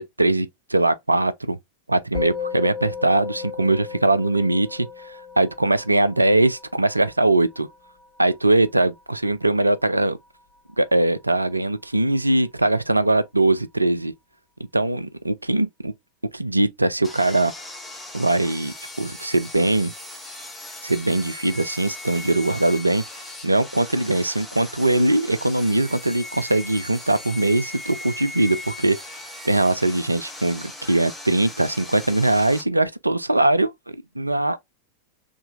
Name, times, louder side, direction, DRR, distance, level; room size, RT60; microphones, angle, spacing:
voice 1, 0.0-1.6 1.9-7.7 8.2-10.2 10.8-14.1 14.7-15.9 16.3-17.5 18.1-19.9 20.8-23.0 23.4-29.0 29.4-34.6, right 2 dB, 85° right, 0.4 m, -21 dB
Musical instrument, 2.1-11.7, left 7 dB, 35° left, 2.0 m, -36 dB
Sawing, 17.0-32.6, left 2 dB, 10° left, 1.3 m, -38 dB
3.7 x 3.3 x 2.4 m
figure-of-eight pair, 90°, 0 cm